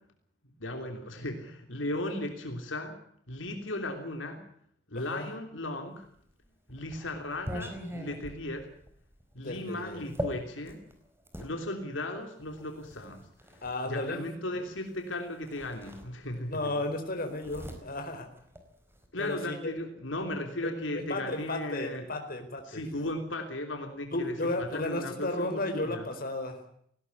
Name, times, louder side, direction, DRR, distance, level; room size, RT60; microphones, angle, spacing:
voice 1, 0.6-3.0 3.3-4.4 4.9-6.0 6.7-8.7 9.3-10.8 11.4-13.2 13.8-16.6 19.1-22.0 22.7-26.0, left 1 dB, 80° left, 4 dB, 3.3 m, -36 dB
voice 2, 4.9-5.3 9.4-10.1 13.6-14.6 16.5-18.3 19.2-19.8 20.9-22.8 24.1-26.6, left 2 dB, 50° left, 6 dB, 4.3 m, -34 dB
sound 1, 6.2-11.5 12.4-13.8 15.0-15.1 15.4-16.6 16.8-19.1, equal, 15° right, 4.5 m, -41 dB
19.0 x 17.5 x 9.8 m, 0.67 s
head